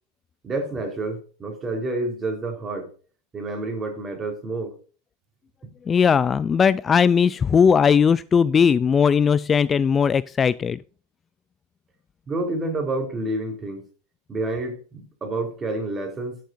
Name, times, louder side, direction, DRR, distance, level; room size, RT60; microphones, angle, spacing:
voice 1, 0.4-2.9 3.3-4.7 12.3-13.8 14.3-16.4, right 2 dB, 20° right, 4.1 m, -29 dB
voice 2, 5.9-10.8, left 6 dB, 25° left, 0.4 m, -18 dB
14.0 x 7.7 x 2.6 m
hypercardioid pair, 110°, 0 cm